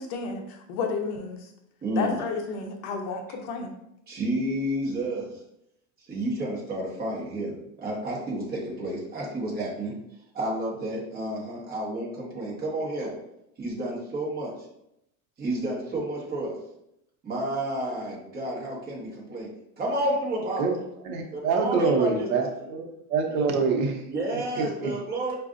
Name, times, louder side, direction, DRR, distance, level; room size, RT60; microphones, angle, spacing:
voice 1, 0.0-1.4 2.0-3.7, left 4 dB, 50° left, 3 dB, 0.7 m, -31 dB
voice 2, 1.8-2.2 4.1-5.3 6.1-7.5 7.8-9.9 10.3-13.1 13.6-14.5 15.4-16.6 17.2-19.5 19.8-20.8 21.3-22.3 23.4-23.5 24.1-25.3, right 1 dB, 20° right, -4 dB, 1.2 m, -30 dB
voice 3, 21.0-22.8 23.1-24.0 24.5-24.9, right 4 dB, 80° right, 2 dB, 1.0 m, -25 dB
5.0 x 2.5 x 2.5 m, 0.79 s
supercardioid pair, 140°, 42 cm